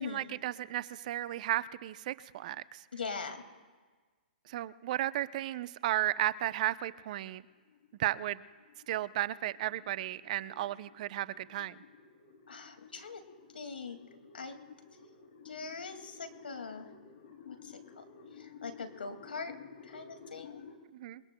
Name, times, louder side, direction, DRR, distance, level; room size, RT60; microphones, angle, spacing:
voice 1, 0.0-2.9 4.4-7.5 8.0-8.4 8.9-11.8 20.9-21.2, right 13 dB, 50° right, 15 dB, 0.6 m, -34 dB
voice 2, 2.9-3.4 12.5-13.2 13.5-14.0 14.3-14.5 15.4-16.9 17.4-18.0 18.4-19.5 19.9-20.6, left 4 dB, 85° left, 7 dB, 2.2 m, -42 dB
sound 1, 6.4-20.8, left 6 dB, 60° left, 3.0 m, -54 dB
28.5 x 21.5 x 2.3 m, 1.4 s
hypercardioid pair, 130°, 5 cm